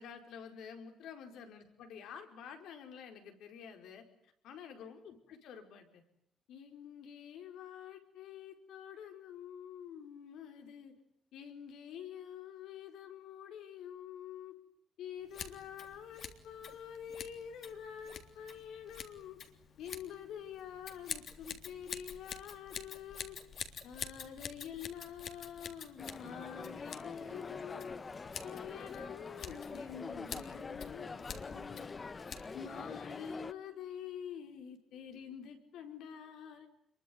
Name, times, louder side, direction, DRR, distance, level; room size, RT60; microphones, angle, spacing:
voice 1, 0.0-4.0 4.4-6.0 6.5-10.9 11.3-14.6 15.0-19.4 19.8-23.4 23.8-28.0 28.4-32.1 32.5-36.7, left 8 dB, 85° left, 6 dB, 5.0 m, -47 dB
Scissors, 15.3-32.8, left 7 dB, 60° left, 3.4 m, -48 dB
sound 1, 26.0-33.5, left 4 dB, 30° left, 1.3 m, -45 dB
26.5 x 23.0 x 9.6 m, 0.71 s
cardioid pair, 90°, 0 cm